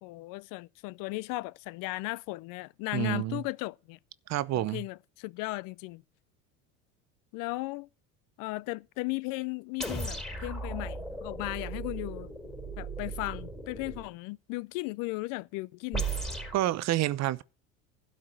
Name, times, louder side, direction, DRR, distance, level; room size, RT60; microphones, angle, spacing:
voice 1, 0.0-4.0 4.5-6.0 7.3-7.9 8.4-12.3 12.8-16.1, left 22 dB, 60° left, 0.5 m, -36 dB
voice 2, 2.9-3.4 4.3-4.8 16.5-17.4, right 14 dB, 45° right, 0.7 m, -28 dB
sound 1, 9.8-14.1 15.9-16.6, right 3 dB, ahead, 4.1 m, -36 dB
12.0 x 4.9 x 7.6 m
supercardioid pair, 90°, 38 cm